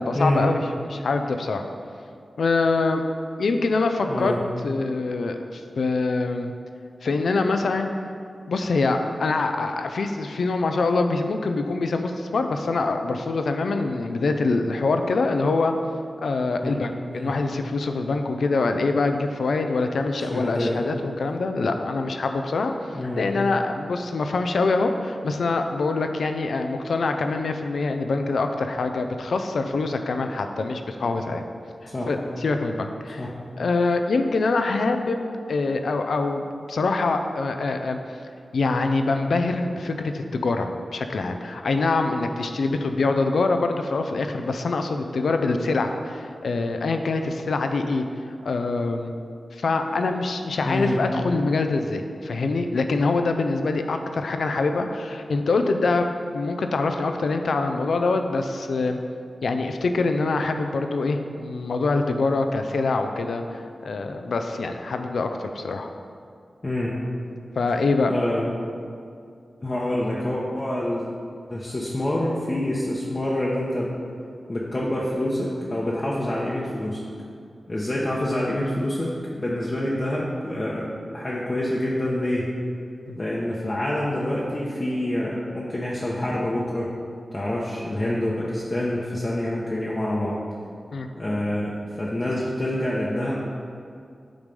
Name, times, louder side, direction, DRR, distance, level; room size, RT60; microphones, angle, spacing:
voice 1, 0.0-1.6 2.4-3.0 3.4-4.4 4.6-6.5 7.0-7.9 8.5-15.7 16.2-31.4 32.1-33.3 33.6-35.2 35.5-38.0 38.5-48.1 48.4-49.1 49.5-56.1 56.3-59.0 59.4-65.9 67.6-68.1 83.1-83.2 90.9-91.1, left 3 dB, 85° left, 6 dB, 0.4 m, -24 dB
voice 2, 4.1-4.4 16.6-16.7 17.1-17.3 20.3-21.0 22.9-23.2 31.9-32.1 33.2-33.3 50.6-51.0 66.6-67.0 68.0-68.5 69.6-71.1 71.5-73.9 74.5-77.0 77.7-80.9 81.1-82.5 83.2-86.9 87.3-90.4 91.2-93.4, left 1 dB, 30° left, -6 dB, 0.8 m, -26 dB
8.6 x 3.2 x 5.3 m, 2.4 s
wide cardioid pair, 85°, 0 cm